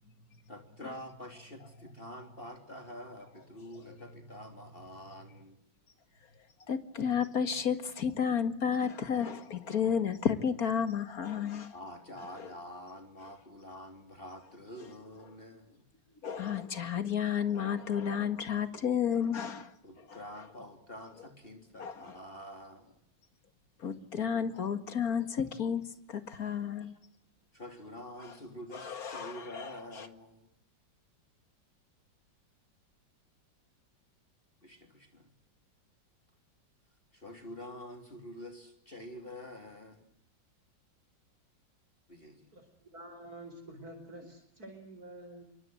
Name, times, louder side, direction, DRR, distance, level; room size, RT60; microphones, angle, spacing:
voice 1, 0.5-5.6 11.7-15.8 19.8-22.9 26.5-27.0 27.5-30.5 34.6-35.3 37.1-40.0 42.1-42.5, equal, 30° left, 3.6 m, -47 dB
voice 2, 6.7-11.7 12.4-12.5 16.2-20.2 21.8-22.2 23.8-25.8 26.1-26.9 28.2-28.3 28.7-30.1, left 7 dB, 50° left, 2.4 m, -32 dB
voice 3, 42.5-45.4, right 1 dB, 50° right, 5.1 m, -48 dB
27.0 x 24.0 x 7.9 m
omnidirectional pair, 2.0 m